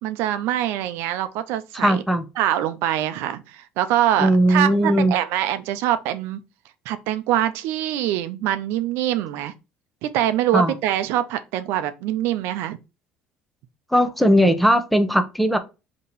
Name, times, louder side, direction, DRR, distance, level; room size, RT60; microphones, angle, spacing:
voice 1, 0.0-2.0 2.4-6.4 6.9-9.5 10.0-12.8, right 12 dB, 75° right, 0.5 m, -24 dB
voice 2, 1.7-2.2 4.2-5.1 10.5-10.7 13.9-15.6, equal, ahead, 0.6 m, -18 dB
3.7 x 2.9 x 4.0 m
supercardioid pair, 100°, 4 cm